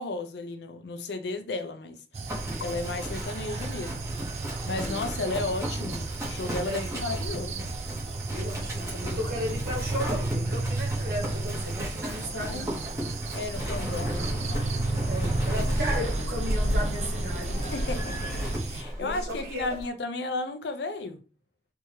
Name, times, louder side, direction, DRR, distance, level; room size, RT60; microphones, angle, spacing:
voice 1, 0.0-4.1 4.7-7.7 12.3-12.7 13.3-14.3 17.7-18.2 18.5-21.2, left 3 dB, 75° left, 0.5 m, -34 dB
sound 1, 2.1-18.8, right 3 dB, 40° right, 0.3 m, -34 dB
Livestock farm animals working animals, 2.3-19.9, right 1 dB, 15° right, 1.0 m, -37 dB
voice 2, 8.3-12.7 15.1-17.6 19.0-19.8, equal, 55° right, 1.0 m, -35 dB
sound 2, 13.5-18.5, equal, 45° left, 0.9 m, -30 dB
3.4 x 3.0 x 2.8 m
head